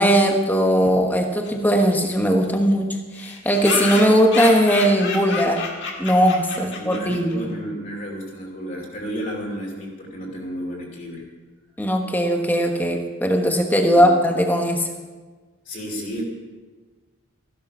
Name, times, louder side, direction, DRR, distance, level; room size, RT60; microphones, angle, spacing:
voice 1, 0.0-5.6 6.0-7.5 11.8-14.9, equal, 10° left, 3 dB, 1.2 m, -19 dB
sound 1, 1.4-1.5 1.8-1.9 2.1-2.2 2.4-2.5 3.1-7.4, left 4 dB, 55° left, 1.9 m, -30 dB
voice 2, 6.5-11.3 13.9-14.1 15.6-16.2, equal, 35° left, -2 dB, 2.7 m, -32 dB
15.0 x 11.5 x 5.5 m, 1.3 s
head